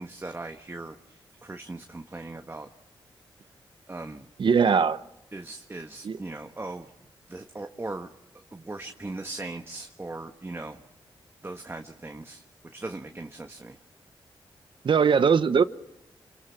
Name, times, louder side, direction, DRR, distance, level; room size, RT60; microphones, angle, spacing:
voice 1, 0.0-2.7 3.9-4.3 5.3-6.9 7.3-8.1 8.5-10.8 11.4-12.4 12.7-13.8, right 2 dB, 25° right, 5 dB, 1.4 m, -39 dB
voice 2, 4.4-5.0 6.0-6.2 14.8-15.6, right 6 dB, 60° right, 13 dB, 0.9 m, -20 dB
27.5 x 22.0 x 5.8 m, 0.87 s
cardioid pair, 55°, 10 cm